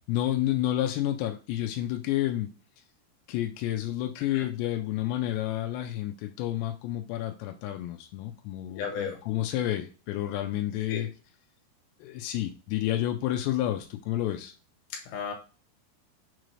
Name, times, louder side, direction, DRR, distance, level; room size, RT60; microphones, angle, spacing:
voice 1, 0.1-2.5 3.3-11.1 12.0-14.5, left 13 dB, 90° left, 3 dB, 2.8 m, -30 dB
voice 2, 8.8-9.2 10.9-11.0 15.1-15.3, left 6 dB, 70° left, 2 dB, 2.9 m, -34 dB
6.5 x 2.6 x 3.1 m, 0.34 s
omnidirectional pair, 4.8 m